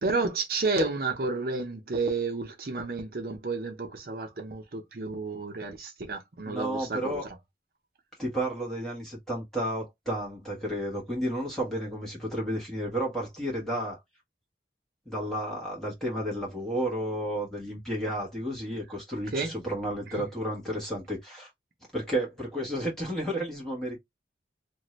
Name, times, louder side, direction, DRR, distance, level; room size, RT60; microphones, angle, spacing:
voice 1, 0.0-7.2 19.3-19.5 20.1-20.2, right 3 dB, 55° right, 0.7 m, -31 dB
voice 2, 6.4-7.3 8.2-14.0 15.0-21.5 21.9-24.0, right 1 dB, 5° left, 1.3 m, -32 dB
2.7 x 2.5 x 3.1 m
head